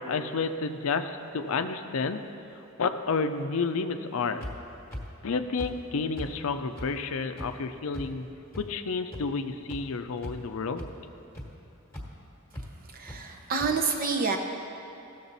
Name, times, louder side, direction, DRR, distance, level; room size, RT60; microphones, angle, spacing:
voice 1, 0.0-2.3 2.8-4.5 5.2-8.3 8.6-10.8, left 4 dB, 65° left, 9 dB, 0.5 m, -30 dB
sound 1, 4.4-4.5 4.9-5.0 5.6-5.7 6.2-6.3 6.8-6.9 7.4-7.5 7.9-8.0 8.5-8.6 9.1-9.2 9.7-9.8 10.2-10.5 10.8-10.9 11.3-11.5 11.9-12.0 12.5-12.6 13.1-13.2 13.6-13.7, equal, 10° left, 1.4 m, -37 dB
voice 2, 12.9-14.4, right 4 dB, 40° right, 3 dB, 0.8 m, -28 dB
16.0 x 6.7 x 4.1 m, 2.8 s
head